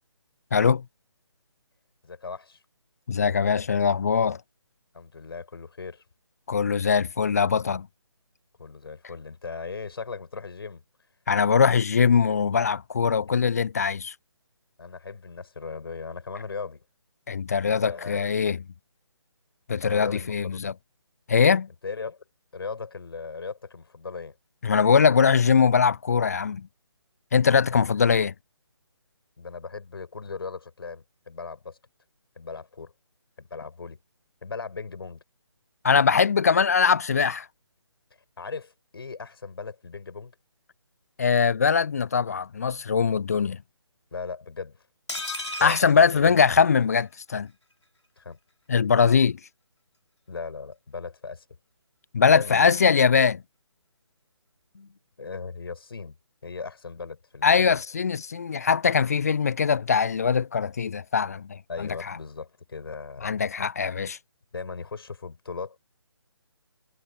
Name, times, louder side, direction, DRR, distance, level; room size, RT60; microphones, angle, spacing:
voice 1, 0.5-0.8 3.1-4.4 6.5-7.9 11.3-14.1 17.3-18.6 19.7-20.7 21.3-21.7 24.6-26.7 27.3-28.3 35.8-37.5 41.2-43.6 45.6-47.5 48.7-49.4 52.1-53.4 57.4-62.2 63.2-64.2, left 6 dB, 35° left, 0.5 m, -22 dB
voice 2, 2.0-2.6 4.9-6.0 8.6-10.8 14.8-16.8 17.6-18.2 19.8-20.6 21.8-22.2 22.5-24.4 27.7-27.9 29.4-31.8 32.4-32.9 33.4-34.0 34.4-35.2 38.4-40.3 44.1-44.8 45.6-46.4 48.2-48.4 50.3-51.4 52.3-52.7 54.7-56.2 56.4-57.8 61.7-63.3 64.5-65.8, left 4 dB, 55° left, 5.8 m, -37 dB
sound 1, 45.1-47.0 47.4-47.5 47.7-47.8, left 2 dB, 70° left, 3.2 m, -35 dB
figure-of-eight pair, 145°, 15 cm